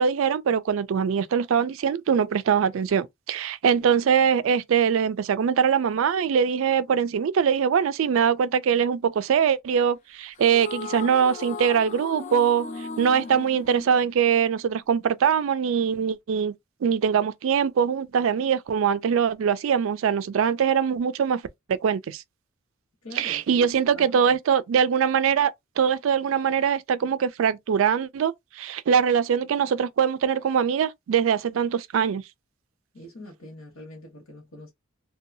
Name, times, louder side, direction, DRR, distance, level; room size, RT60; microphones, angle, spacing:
voice 1, 0.0-16.5 16.8-21.4 21.7-22.2 23.2-32.2, right 7 dB, 70° right, 0.3 m, -22 dB
sound 1, 10.4-14.8, left 4 dB, 35° left, 0.3 m, -37 dB
voice 2, 23.0-23.7 23.9-24.4 32.9-34.7, equal, 80° left, 1.0 m, -43 dB
2.6 x 2.3 x 2.6 m
head